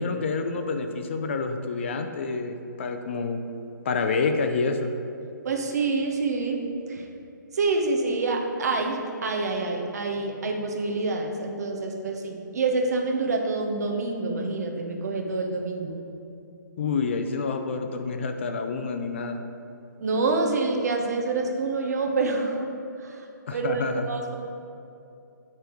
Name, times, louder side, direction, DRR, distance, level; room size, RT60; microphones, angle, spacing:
voice 1, 0.0-3.4 3.9-4.9 16.8-19.4 23.5-24.0, left 4 dB, 35° left, 6 dB, 0.4 m, -28 dB
voice 2, 5.4-6.6 6.9-7.1 7.5-16.0 20.0-22.7 23.0-23.3 23.5-24.3, right 3 dB, 55° right, 2 dB, 0.9 m, -27 dB
8.6 x 3.5 x 4.4 m, 2.6 s
hypercardioid pair, 160°, 11 cm